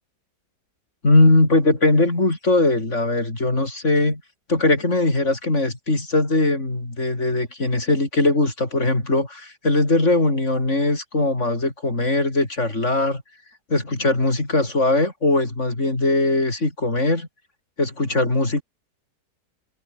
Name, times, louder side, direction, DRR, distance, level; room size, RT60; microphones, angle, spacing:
voice 1, 1.0-4.2 4.5-13.2 13.7-17.3 17.8-18.6, left 2 dB, 40° left, 5.5 m, -20 dB
omnidirectional pair, 1.8 m